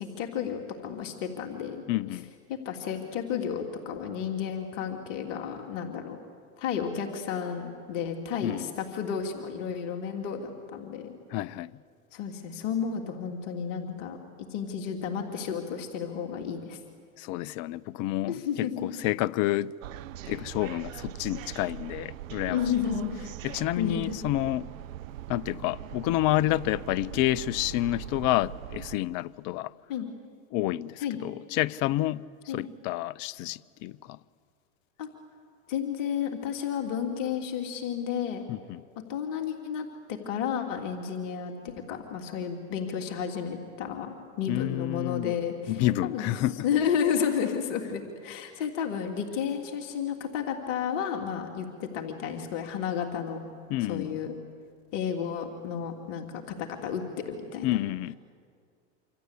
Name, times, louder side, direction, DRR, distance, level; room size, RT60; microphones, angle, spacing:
voice 1, 0.0-1.8 2.6-6.2 6.6-11.1 12.1-14.2 14.5-16.8 18.3-18.9 22.5-23.2 23.8-24.2 29.9-30.1 31.0-31.2 32.5-32.6 35.0-35.1 35.7-38.5 39.1-46.3 46.6-53.4 53.9-54.4 54.9-56.2 56.6-57.0 57.3-57.8, left 7 dB, 65° left, 3.1 m, -32 dB
voice 2, 1.9-2.3 8.4-8.7 11.3-11.7 17.2-19.7 20.3-22.6 23.4-24.7 25.3-29.7 30.5-34.2 38.5-38.8 44.5-45.3 45.7-46.7 53.7-54.2 57.6-58.1, left 15 dB, 45° left, 0.8 m, -29 dB
sound 1, 19.8-29.0, right 12 dB, 75° right, 0.9 m, -41 dB
27.0 x 26.5 x 8.4 m
hypercardioid pair, 105°, 40 cm